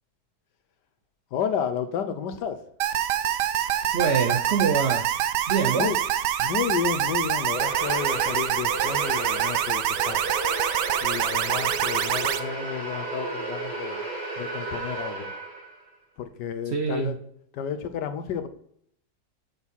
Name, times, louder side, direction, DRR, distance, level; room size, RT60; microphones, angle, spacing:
voice 1, 1.3-2.6 5.7-6.0 6.4-10.2 11.0-14.0 14.4-15.3 16.2-17.2 17.5-18.5, left 8 dB, 80° left, 9 dB, 1.3 m, -31 dB
sound 1, 2.8-12.4, right 11 dB, 80° right, 1.2 m, -26 dB
voice 2, 3.9-5.1 5.5-5.9 16.7-17.1, right 6 dB, 60° right, 6 dB, 0.7 m, -24 dB
sound 2, 7.5-15.8, right 2 dB, 40° right, 2.7 m, -33 dB
7.2 x 6.2 x 5.5 m, 0.66 s
omnidirectional pair, 1.8 m